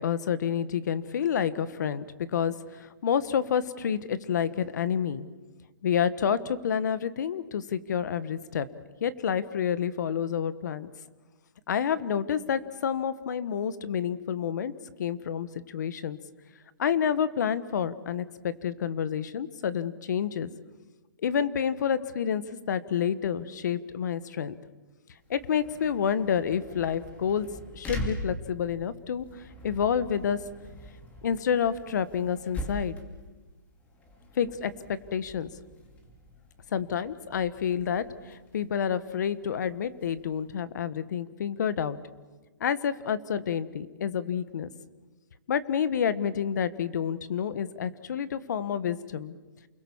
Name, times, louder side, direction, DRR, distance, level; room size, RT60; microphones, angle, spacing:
voice 1, 0.0-5.3 5.8-8.7 9.0-10.9 11.7-14.7 15.0-16.2 16.8-20.5 21.2-24.5 25.3-27.5 27.7-30.4 31.2-33.0 34.3-35.5 36.7-42.0 42.6-44.7 45.5-49.3, left 8 dB, 60° left, 15 dB, 1.4 m, -29 dB
sound 1, 25.2-40.5, equal, 15° left, 2.6 m, -43 dB
29.0 x 21.5 x 7.3 m, 1.3 s
hypercardioid pair, 165°, 11 cm